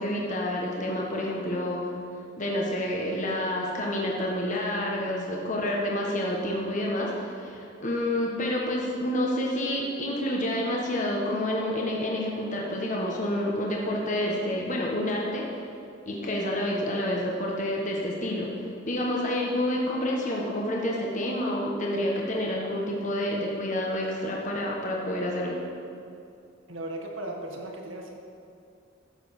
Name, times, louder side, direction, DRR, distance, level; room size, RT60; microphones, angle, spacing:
voice 1, 0.0-1.9 2.4-15.5 16.0-18.5 18.9-25.6, left 1 dB, 40° left, -2 dB, 1.5 m, -28 dB
voice 2, 26.7-28.2, right 1 dB, 90° right, 1 dB, 1.9 m, -36 dB
13.0 x 7.8 x 6.1 m, 2.5 s
head